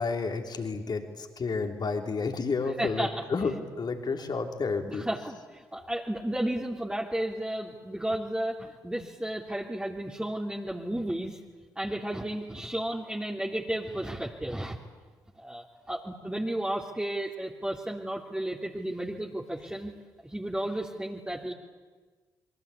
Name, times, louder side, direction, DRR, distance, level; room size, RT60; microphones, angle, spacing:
voice 1, 0.0-5.3, left 4 dB, 45° left, 4 dB, 3.5 m, -31 dB
voice 2, 2.8-3.2 4.8-11.4 11.7-14.8 15.4-19.9 20.2-21.5, right 1 dB, 10° right, -2 dB, 3.1 m, -33 dB
27.5 x 23.0 x 8.5 m, 1.4 s
hypercardioid pair, 40°, 10 cm